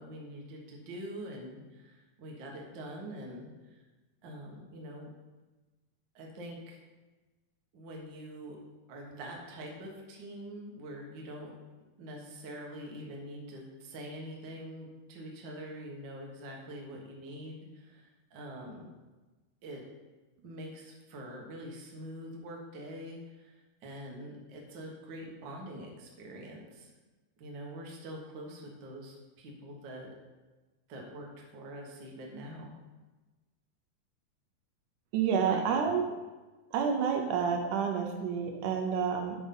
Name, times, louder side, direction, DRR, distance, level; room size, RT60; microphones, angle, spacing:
voice 1, 0.0-3.8 4.2-5.1 6.1-6.8 7.7-8.6 8.9-11.5 12.0-18.9 19.6-19.8 20.4-26.9 27.4-30.1 30.9-32.7 35.3-35.6, equal, 55° right, -1 dB, 1.2 m, -44 dB
voice 2, 35.1-36.0 36.7-39.4, right 7 dB, 75° right, 3 dB, 2.1 m, -29 dB
8.1 x 5.0 x 5.4 m, 1.2 s
omnidirectional pair, 4.0 m